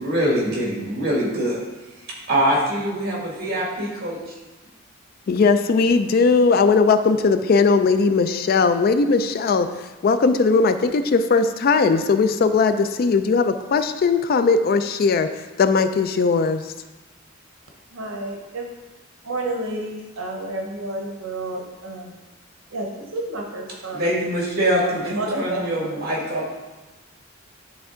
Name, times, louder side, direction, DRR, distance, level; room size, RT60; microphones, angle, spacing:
voice 1, 0.0-1.6 2.3-4.4 23.9-26.5, equal, 50° right, -4 dB, 2.1 m, -23 dB
voice 2, 5.3-9.7 10.0-15.3 15.6-16.7, left 4 dB, 45° left, 9 dB, 0.3 m, -18 dB
voice 3, 17.9-18.7 19.2-22.1 22.7-24.1 24.8-26.0, right 2 dB, 80° right, 1 dB, 0.9 m, -30 dB
10.0 x 3.4 x 3.7 m, 1.2 s
head